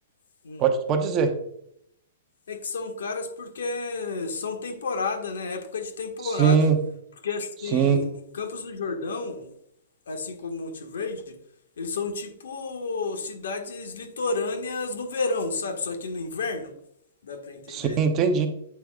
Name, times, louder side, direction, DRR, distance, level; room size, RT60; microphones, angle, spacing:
voice 1, 0.6-1.3 6.4-6.8 7.7-8.0 17.7-18.5, right 6 dB, 25° right, 6 dB, 0.8 m, -21 dB
voice 2, 2.5-6.7 7.2-9.5 10.1-11.4 11.8-16.7 17.2-18.0, left 3 dB, 90° left, 4 dB, 1.7 m, -31 dB
8.5 x 7.0 x 2.4 m, 0.72 s
hypercardioid pair, 165°, 0 cm